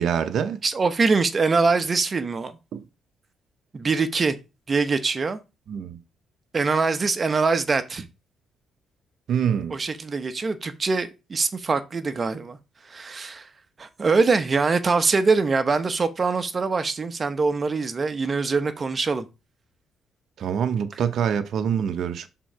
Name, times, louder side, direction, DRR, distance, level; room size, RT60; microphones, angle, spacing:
voice 1, 0.0-0.6 2.7-2.8 5.7-6.0 9.3-9.8 20.4-22.3, right 8 dB, 65° right, 0.7 m, -25 dB
voice 2, 0.6-2.5 3.7-4.4 4.7-5.4 6.5-8.1 9.7-12.6 12.9-13.5 13.8-19.3, right 4 dB, 35° right, 0.9 m, -23 dB
6.2 x 3.8 x 4.7 m
cardioid pair, 90°, 0 cm